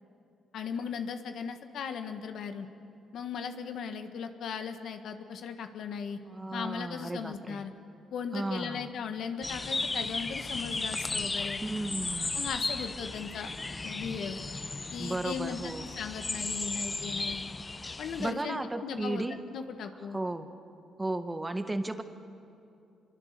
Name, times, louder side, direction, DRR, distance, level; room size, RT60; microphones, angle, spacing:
voice 1, 0.5-2.7 3.1-6.2 6.5-7.7 8.1-11.6 12.3-13.5 13.8-14.4 14.9-17.4 18.0-19.3 19.5-20.2, left 6 dB, 70° left, 7 dB, 1.6 m, -37 dB
voice 2, 6.3-7.6 8.3-8.9 11.6-12.4 15.0-15.9 18.2-19.4 20.1-20.5 21.0-22.0, right 2 dB, 15° right, 8 dB, 1.5 m, -34 dB
sound 1, 9.4-18.3, left 3 dB, 25° left, 0.7 m, -35 dB
25.5 x 23.5 x 6.8 m, 2.7 s
cardioid pair, 90°, 0 cm